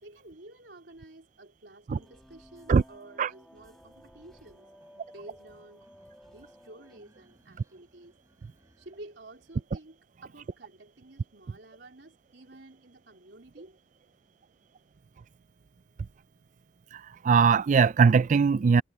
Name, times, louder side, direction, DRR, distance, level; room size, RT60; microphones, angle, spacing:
voice 1, 0.0-5.9 6.2-8.2 8.8-13.8, right 2 dB, 80° right, 3.5 m, -51 dB
sound 1, 2.0-7.0, equal, 5° left, 1.6 m, -55 dB
sound 2, 4.8-9.6, equal, 20° right, 6.7 m, -66 dB
voice 2, 16.9-18.8, right 5 dB, 45° right, 0.3 m, -21 dB
head